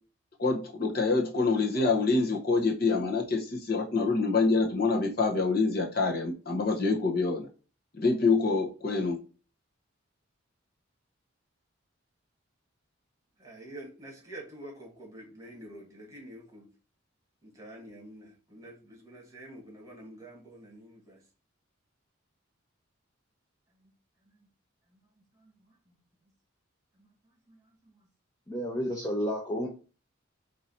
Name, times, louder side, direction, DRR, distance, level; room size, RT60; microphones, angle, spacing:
voice 1, 0.4-7.5 7.9-9.2, left 3 dB, 50° left, 0 dB, 0.8 m, -26 dB
voice 2, 13.4-16.7 17.4-21.2 23.8-23.9 24.3-24.5 24.9-25.0 25.3-25.9 27.0-27.1 27.5-27.9, right 1 dB, 15° right, -2 dB, 1.5 m, -48 dB
voice 3, 28.5-29.7, equal, 15° left, -2 dB, 0.7 m, -31 dB
4.7 x 2.7 x 4.1 m, 0.35 s
head